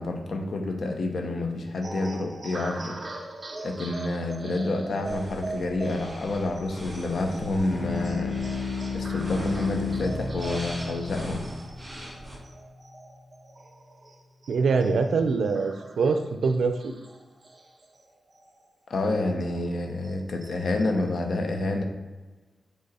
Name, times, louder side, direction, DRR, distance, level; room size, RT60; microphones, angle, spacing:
voice 1, 0.0-3.0 3.6-8.4 8.9-11.4 18.9-21.8, left 2 dB, 60° left, 4 dB, 0.9 m, -28 dB
sound 1, 1.8-18.7 19.1-19.2 19.6-21.2, right 2 dB, 30° right, 0.7 m, -42 dB
sound 2, 5.0-12.4, right 1 dB, 5° right, 2.1 m, -42 dB
sound 3, 7.7-12.6, left 5 dB, 35° left, 1.7 m, -33 dB
voice 2, 14.5-16.9, right 4 dB, 80° right, 7 dB, 0.5 m, -24 dB
7.8 x 3.6 x 4.2 m, 1.3 s
wide cardioid pair, 170°, 0 cm